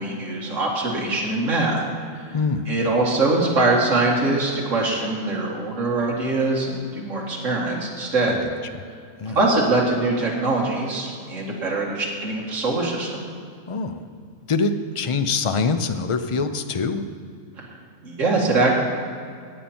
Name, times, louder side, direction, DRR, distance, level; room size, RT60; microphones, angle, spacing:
voice 1, 0.0-1.8 2.7-8.4 9.3-13.2 17.6-17.7 18.0-18.7, right 2 dB, 65° right, -3 dB, 2.3 m, -23 dB
voice 2, 2.3-2.7 8.3-8.5 9.2-9.4 13.7-14.1 14.5-17.0, left 4 dB, 50° left, 8 dB, 0.3 m, -24 dB
16.5 x 9.0 x 4.4 m, 2.3 s
omnidirectional pair, 1.4 m